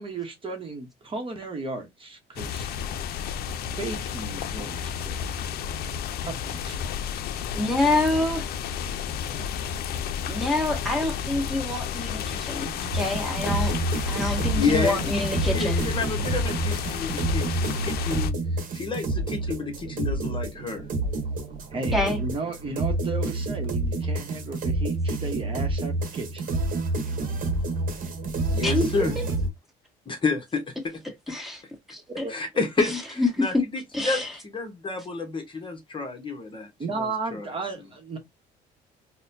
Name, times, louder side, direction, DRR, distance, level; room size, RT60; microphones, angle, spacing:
voice 1, 0.0-2.7 3.8-5.4 6.2-7.1 7.4-7.5 21.7-26.5 32.1-32.3 36.8-38.2, right 3 dB, 30° right, 0.9 m, -35 dB
sound 1, 2.4-18.3, left 8 dB, 70° left, 0.5 m, -31 dB
voice 2, 7.5-8.5 10.3-13.7 14.1-15.9 21.9-22.2 28.6-29.2 31.3-31.6 31.9-32.2 32.8-33.6 33.9-34.4, left 2 dB, ahead, 1.3 m, -27 dB
sound 2, 12.9-29.5, right 2 dB, 55° right, 1.0 m, -28 dB
voice 3, 14.6-15.2 15.5-18.4 18.7-20.8 28.5-29.2 30.1-30.6 32.3-33.5 34.0-36.7 37.0-37.5, left 4 dB, 30° left, 1.0 m, -29 dB
4.0 x 2.2 x 2.6 m
cardioid pair, 110°, 17 cm